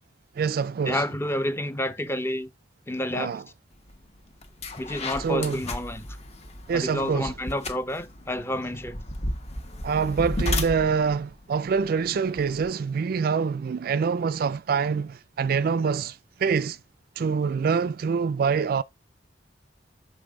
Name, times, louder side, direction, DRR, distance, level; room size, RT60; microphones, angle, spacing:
voice 1, 0.4-1.0 3.1-3.4 5.2-5.6 6.7-7.3 9.8-16.8 17.2-18.8, right 6 dB, 55° right, 0.3 m, -25 dB
voice 2, 0.9-2.5 2.9-3.4 4.8-6.1 6.7-9.0, left 1 dB, 15° left, 0.7 m, -29 dB
sound 1, 3.9-4.0 4.4-12.7, left 1 dB, 40° left, 1.2 m, -34 dB
6.5 x 5.3 x 3.6 m
head